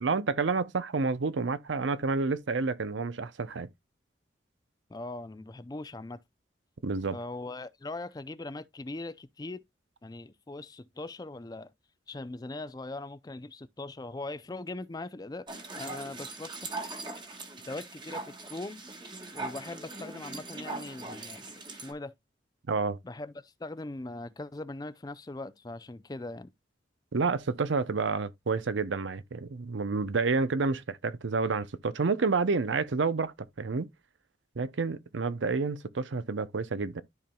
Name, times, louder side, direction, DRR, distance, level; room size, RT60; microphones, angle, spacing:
voice 1, 0.0-3.7 6.8-7.2 22.7-23.0 27.1-33.9 34.6-37.0, right 4 dB, 80° right, 0.7 m, -29 dB
voice 2, 4.9-6.2 7.1-9.6 10.0-11.7 12.1-15.5 15.8-16.7 17.7-18.8 19.3-22.1 23.0-26.5, left 2 dB, 20° left, 0.4 m, -40 dB
sound 1, 15.5-21.9, right 3 dB, 25° right, 1.3 m, -41 dB
13.0 x 4.4 x 2.3 m
head